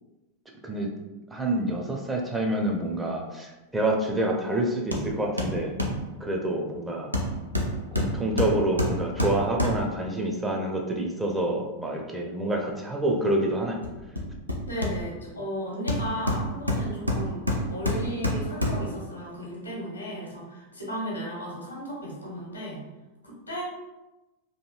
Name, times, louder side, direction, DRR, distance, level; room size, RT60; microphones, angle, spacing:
voice 1, 1.3-5.7 6.2-7.1 7.9-13.8, right 1 dB, 10° right, 1 dB, 0.4 m, -27 dB
Hammer, 4.9-5.1 5.4-6.0 7.1-10.0 13.8-15.3 15.9-19.0 19.4-19.5, left 1 dB, 90° right, 0.4 m, -28 dB
voice 2, 14.6-17.4 17.7-22.8 23.2-23.6, equal, 80° left, -3 dB, 0.9 m, -35 dB
2.7 x 2.7 x 2.2 m, 1.1 s
figure-of-eight pair, 90°, 0 cm